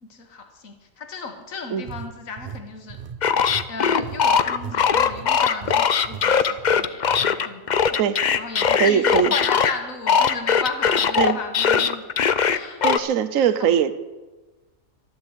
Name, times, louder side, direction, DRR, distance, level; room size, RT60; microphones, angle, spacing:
voice 1, 0.0-3.0 3.7-8.1 8.4-12.0 12.4-12.8 13.6-13.7, left 4 dB, 85° left, 5 dB, 1.9 m, -34 dB
sound 1, 1.8-4.8 5.0-5.3 5.6-5.8 6.0-6.3 6.6-7.3, right 7 dB, 45° right, 0.7 m, -37 dB
sound 2, 3.2-9.7 10.1-13.0, left 7 dB, 50° left, 0.6 m, -20 dB
voice 2, 8.7-9.3 11.2-11.4 12.8-13.9, right 8 dB, 80° right, 14 dB, 1.2 m, -21 dB
12.0 x 12.0 x 8.0 m, 1.2 s
omnidirectional pair, 1.4 m